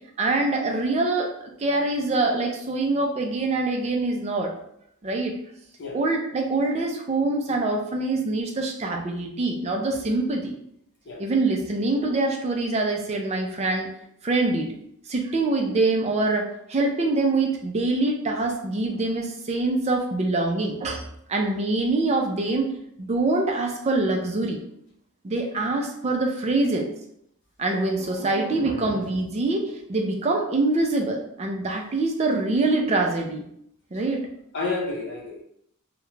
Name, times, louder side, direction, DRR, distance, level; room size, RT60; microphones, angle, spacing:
voice 1, 0.2-1.3 1.6-4.5 5.0-5.3 5.9-10.5 11.2-13.9 14.2-14.7 15.1-21.0 21.3-22.7 23.0-24.6 25.2-26.9 27.6-29.6 29.9-33.4 33.9-34.2, right 2 dB, 30° right, 1 dB, 0.4 m, -24 dB
voice 2, 34.5-35.4, left 3 dB, 50° left, -2 dB, 0.6 m, -30 dB
2.4 x 2.1 x 3.1 m, 0.72 s
head